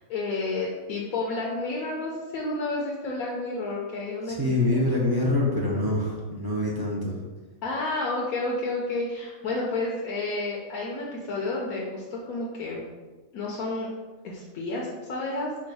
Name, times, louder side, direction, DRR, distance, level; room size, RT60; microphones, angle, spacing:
voice 1, 0.1-4.4 7.6-12.8 13.3-13.9 14.2-15.7, left 2 dB, 85° left, -3 dB, 1.1 m, -30 dB
voice 2, 4.3-7.2, left 1 dB, 35° right, -5 dB, 0.3 m, -25 dB
4.6 x 2.3 x 4.6 m, 1.3 s
omnidirectional pair, 1.5 m